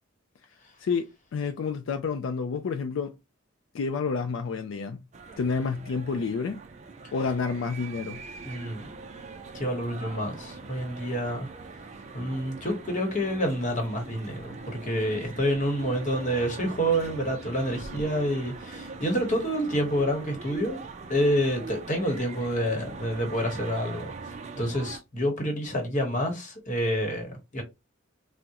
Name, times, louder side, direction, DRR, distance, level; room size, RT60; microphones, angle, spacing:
voice 1, 0.8-3.2 3.7-5.0 5.4-6.6 7.1-8.2, left 5 dB, 75° left, 0.4 m, -29 dB
sound 1, 5.1-25.0, right 4 dB, 35° right, 0.4 m, -42 dB
voice 2, 8.4-8.9 9.5-11.5 12.1-20.8 21.1-24.1 24.5-27.6, equal, 40° left, 1.1 m, -28 dB
3.6 x 2.1 x 2.8 m
head